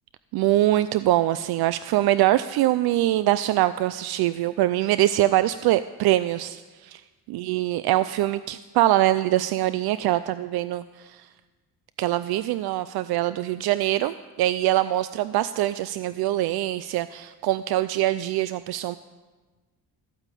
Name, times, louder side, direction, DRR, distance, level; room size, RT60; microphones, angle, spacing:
voice 1, 0.3-7.0 7.3-11.2 12.0-19.0, right 14 dB, 70° right, 14 dB, 0.5 m, -23 dB
14.5 x 8.9 x 8.3 m, 1.3 s
cardioid pair, 150°, 38 cm